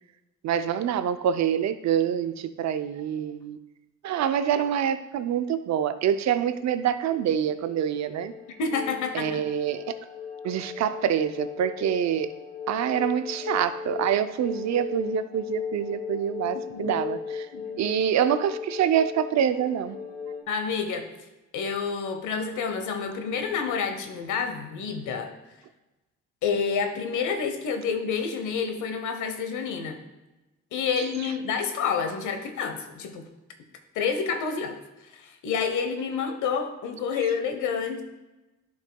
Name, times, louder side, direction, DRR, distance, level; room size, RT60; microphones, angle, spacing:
voice 1, 0.4-3.6 4.0-8.3 9.1-9.9 10.4-12.3 12.7-17.5 17.8-20.0, right 9 dB, 65° right, 11 dB, 0.5 m, -26 dB
sound 1, 6.6-20.4, left 7 dB, 30° left, 0.9 m, -37 dB
voice 2, 8.6-9.4 16.7-16.9 17.5-17.8 20.5-21.1 21.5-25.3 26.4-30.0 30.7-33.3 33.9-34.8 35.1-38.0, left 6 dB, 80° left, 6 dB, 1.0 m, -29 dB
10.5 x 5.4 x 2.3 m, 1.1 s
cardioid pair, 90°, 30 cm